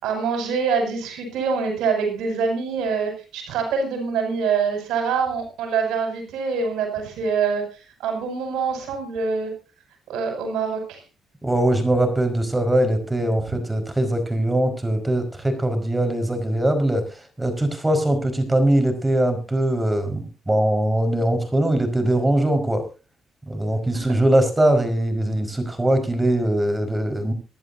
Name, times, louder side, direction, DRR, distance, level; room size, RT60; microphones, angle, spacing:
voice 1, 0.0-9.5 10.1-11.0 23.9-24.1, right 5 dB, 85° right, 4 dB, 5.8 m, -25 dB
voice 2, 11.4-22.8 23.5-27.3, right 1 dB, 10° right, 7 dB, 4.9 m, -21 dB
26.0 x 11.0 x 2.7 m, 0.32 s
cardioid pair, 90°, 0 cm